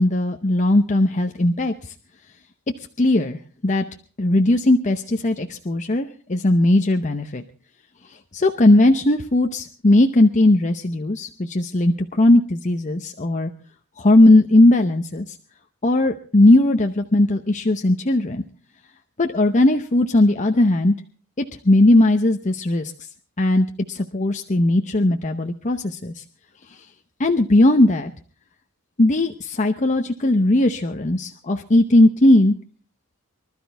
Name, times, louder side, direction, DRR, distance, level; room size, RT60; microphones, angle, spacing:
voice 1, 0.0-1.9 3.0-3.8 4.2-7.4 8.1-13.5 14.0-15.3 15.8-18.4 19.2-20.9 21.4-22.9 23.4-26.2 26.7-26.8 27.2-28.1 29.0-32.5, left 1 dB, 35° left, 5 dB, 0.8 m, -18 dB
24.5 x 12.5 x 3.4 m, 0.40 s
head